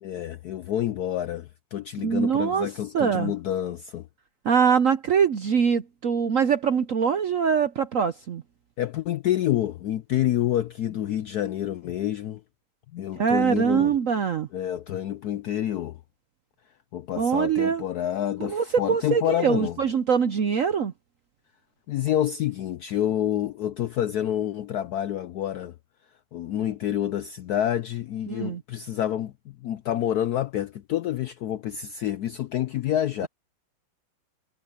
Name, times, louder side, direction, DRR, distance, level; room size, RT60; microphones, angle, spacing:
voice 1, 0.0-4.1 8.8-12.4 12.9-14.0 14.5-16.0 16.9-19.8 21.9-25.7 26.3-33.3, left 11 dB, 75° left, 0.9 m, -28 dB
voice 2, 2.0-2.7 2.9-3.3 4.4-8.4 13.2-14.5 17.2-17.8 18.4-20.9 28.3-28.6, right 7 dB, 60° right, 0.8 m, -23 dB
omnidirectional pair, 2.2 m